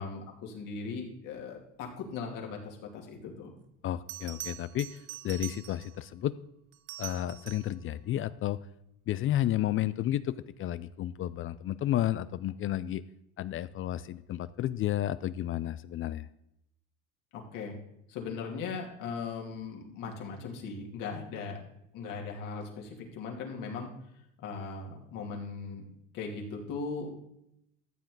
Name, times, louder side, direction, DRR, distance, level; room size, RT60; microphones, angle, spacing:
voice 1, 0.0-3.5 17.3-17.8 18.1-21.6 21.9-23.9 24.4-25.8 26.1-27.2, left 4 dB, 65° left, 0 dB, 2.9 m, -39 dB
Bell, 3.5-3.6 4.1-6.0 6.7-7.8 10.5-10.7, right 15 dB, 90° right, 0.9 m, -43 dB
voice 2, 3.8-5.0 5.2-6.3 7.0-8.6 9.1-13.0 13.4-16.3, left 13 dB, 40° left, 16 dB, 0.4 m, -32 dB
13.5 x 7.4 x 3.9 m, 0.78 s
supercardioid pair, 110°, 34 cm